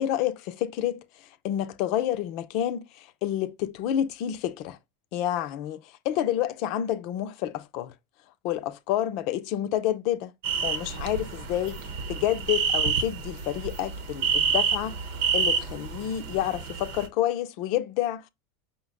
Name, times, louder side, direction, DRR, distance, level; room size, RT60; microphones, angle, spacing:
voice 1, 0.0-4.8 5.1-7.9 8.4-10.3 10.6-15.0 15.3-18.3, left 12 dB, 60° left, 0.6 m, -29 dB
sound 1, 10.4-17.1, right 6 dB, 70° right, 1.0 m, -28 dB
5.5 x 2.2 x 3.8 m
hypercardioid pair, 105°, 0 cm